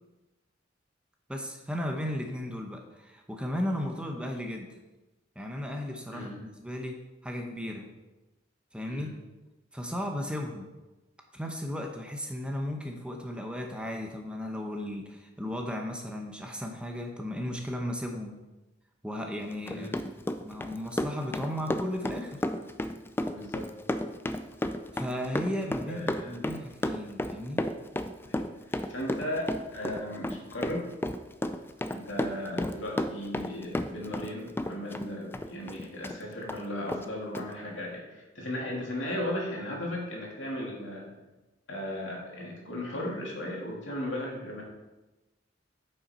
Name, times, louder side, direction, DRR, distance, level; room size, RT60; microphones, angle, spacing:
voice 1, 1.3-4.7 5.4-7.9 8.7-9.1 9.7-10.7 11.3-18.4 19.0-19.9 20.4-22.4 24.9-27.6, left 1 dB, 5° right, 2 dB, 0.8 m, -35 dB
Run, 19.5-34.3 34.6-36.2 36.5-36.6 36.9-37.0 37.3-37.5, left 1 dB, 10° left, 0.4 m, -32 dB
voice 2, 23.3-23.7 25.9-26.4 28.2-30.9 31.9-41.1 41.7-44.6, left 1 dB, 75° left, -2 dB, 2.3 m, -36 dB
9.2 x 5.6 x 4.3 m, 1.1 s
head